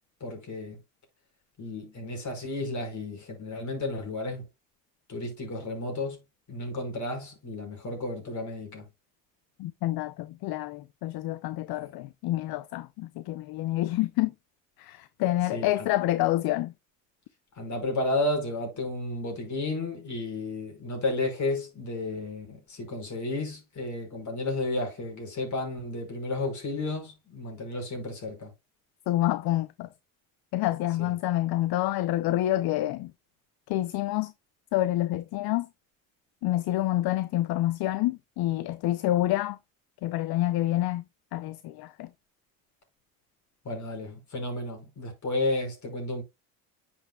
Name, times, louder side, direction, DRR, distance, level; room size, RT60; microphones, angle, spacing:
voice 1, 0.2-0.8 1.6-4.4 5.1-6.2 6.5-8.9 11.7-11.9 15.5-15.9 17.6-28.5 31.0-31.1 43.7-46.2, left 2 dB, 45° left, 5.3 m, -32 dB
voice 2, 9.6-14.3 14.8-16.7 29.1-29.9 30.5-33.1 33.7-34.3 34.7-35.7 36.4-39.6 40.0-41.0 41.3-42.1, left 15 dB, 60° left, 0.7 m, -28 dB
9.9 x 6.2 x 2.3 m
supercardioid pair, 75°, 41 cm